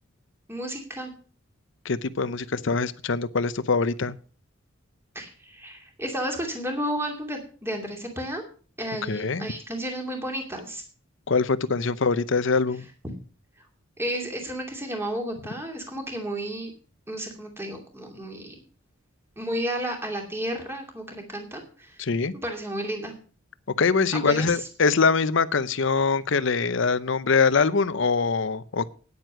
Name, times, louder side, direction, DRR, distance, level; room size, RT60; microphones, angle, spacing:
voice 1, 0.5-1.1 5.1-8.4 8.8-10.8 14.0-16.7 17.1-18.6 19.4-22.0 22.4-23.1 24.1-24.7, equal, 10° right, 2 dB, 2.6 m, -32 dB
voice 2, 1.8-4.2 9.1-9.5 11.3-12.8 22.0-22.3 23.8-28.9, left 4 dB, 65° left, 15 dB, 0.7 m, -23 dB
9.7 x 9.1 x 6.2 m, 0.40 s
head